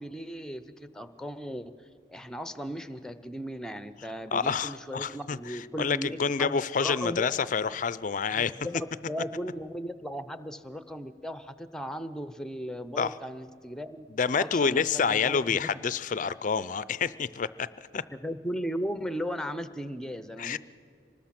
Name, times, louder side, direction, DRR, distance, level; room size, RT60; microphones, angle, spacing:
voice 1, 0.0-1.7 2.1-7.3 8.3-14.1 14.4-15.7 18.1-20.6, equal, 5° left, 12 dB, 0.6 m, -37 dB
voice 2, 4.3-8.5 13.0-13.1 14.2-17.7 17.9-18.0 20.4-20.6, left 6 dB, 40° left, 17 dB, 0.4 m, -28 dB
24.5 x 19.5 x 5.9 m, 2.3 s
head